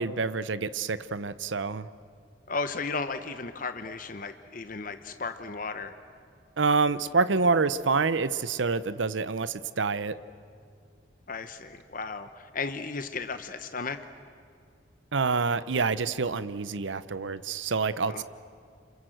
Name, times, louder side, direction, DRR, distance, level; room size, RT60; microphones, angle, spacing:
voice 1, 0.0-1.9 6.6-10.2 15.1-18.2, right 4 dB, 75° right, 15 dB, 0.7 m, -27 dB
voice 2, 2.5-5.9 11.3-14.0 18.1-18.2, left 4 dB, 45° left, 9 dB, 0.9 m, -35 dB
28.5 x 26.5 x 7.8 m, 2.3 s
head